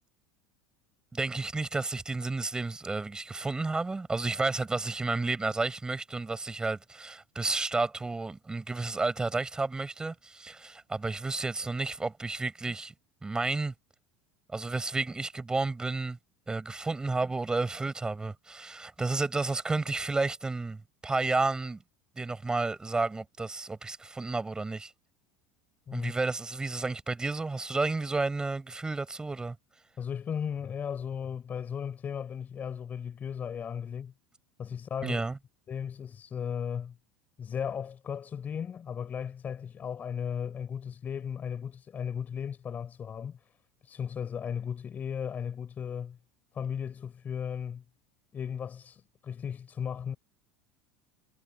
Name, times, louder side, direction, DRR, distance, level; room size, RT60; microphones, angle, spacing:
voice 1, 1.1-12.9 13.2-13.7 14.5-16.2 16.5-21.8 22.2-24.9 25.9-29.6 35.0-35.4, right 3 dB, 15° right, 5.7 m, -31 dB
voice 2, 30.0-34.1 34.6-35.2 35.7-37.0 37.4-43.4 43.8-46.2 46.5-47.8 48.3-50.2, left 7 dB, 35° left, 5.7 m, -36 dB
hypercardioid pair, 85°, 5 cm